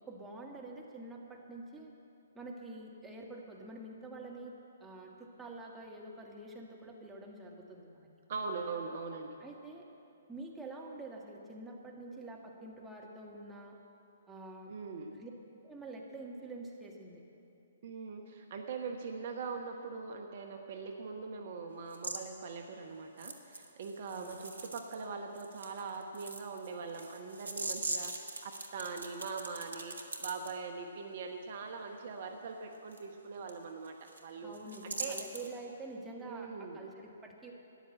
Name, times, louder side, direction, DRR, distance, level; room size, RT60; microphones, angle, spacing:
voice 1, 0.1-1.9 2.3-4.5 4.8-8.1 9.4-9.8 10.3-13.8 14.3-14.7 15.1-15.3 15.6-17.2 24.1-24.5 34.4-37.5, right 2 dB, 10° right, -2 dB, 1.7 m, -47 dB
voice 2, 8.3-9.4 14.7-15.1 17.8-34.6 34.8-35.2 36.2-36.8, right 4 dB, 45° right, 3 dB, 1.0 m, -42 dB
sound 1, 21.9-22.2 23.2-25.0 25.3-30.5 32.9-33.0 33.5-33.6 33.8-34.2 34.5-35.5, right 3 dB, 75° right, 1.4 m, -41 dB
13.0 x 10.0 x 7.8 m, 2.7 s
figure-of-eight pair, 125°, 0 cm